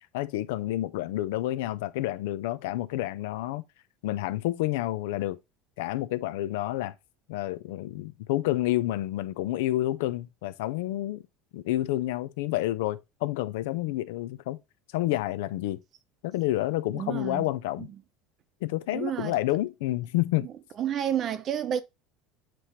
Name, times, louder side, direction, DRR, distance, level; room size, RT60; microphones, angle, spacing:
voice 1, 0.1-3.6 4.0-5.4 5.8-6.9 7.3-11.2 11.5-14.6 14.9-15.8 16.2-17.9 18.6-20.5, left 15 dB, 90° left, 0.6 m, -29 dB
voice 2, 16.9-17.4 17.8-17.9 18.9-19.3 20.8-21.8, right 9 dB, 40° right, 0.7 m, -30 dB
7.6 x 3.3 x 4.1 m
cardioid pair, 140°, 0 cm